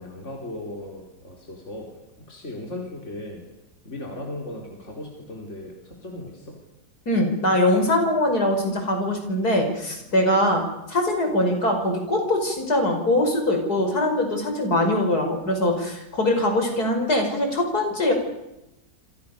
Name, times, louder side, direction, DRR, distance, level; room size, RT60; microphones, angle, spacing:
voice 1, 0.0-1.9 2.2-3.4 3.8-6.6, left 1 dB, 45° left, 0 dB, 4.6 m, -37 dB
voice 2, 7.1-10.6 10.9-18.1, left 1 dB, 70° left, 4 dB, 6.2 m, -22 dB
28.0 x 27.5 x 6.9 m, 0.92 s
omnidirectional pair, 1.7 m